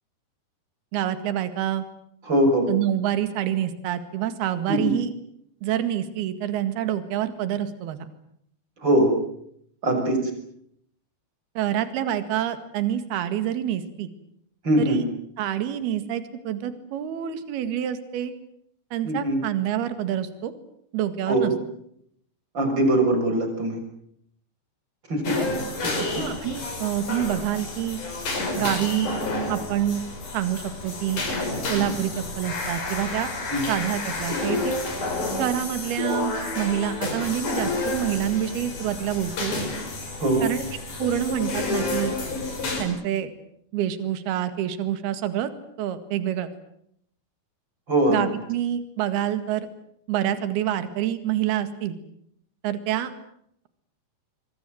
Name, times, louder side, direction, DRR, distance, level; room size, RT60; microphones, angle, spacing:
voice 1, 0.9-1.8 2.7-5.1 5.6-8.1 11.6-14.1 14.8-15.0 15.4-18.3 18.9-20.5 20.9-21.5 25.4-25.5 26.2-28.0 28.6-29.1 29.5-30.1 30.3-31.2 31.7-33.3 33.7-34.8 35.4-39.5 40.4-40.6 41.0-42.2 42.8-43.3 43.7-45.5 45.8-46.5 48.1-49.7 50.1-52.0 52.6-53.1, right 11 dB, 65° right, 10 dB, 3.7 m, -27 dB
voice 2, 2.3-2.7 4.7-4.9 8.8-9.1 9.8-10.2 14.6-15.0 19.0-19.4 21.3-21.5 22.5-23.8 25.1-25.4 25.8-26.1 33.5-33.8 40.2-40.5 47.9-48.2, right 1 dB, 25° right, 5 dB, 6.6 m, -21 dB
sound 1, 25.2-42.8, left 2 dB, 45° left, 6.9 m, -30 dB
26.0 x 23.5 x 7.8 m, 0.72 s
omnidirectional pair, 5.0 m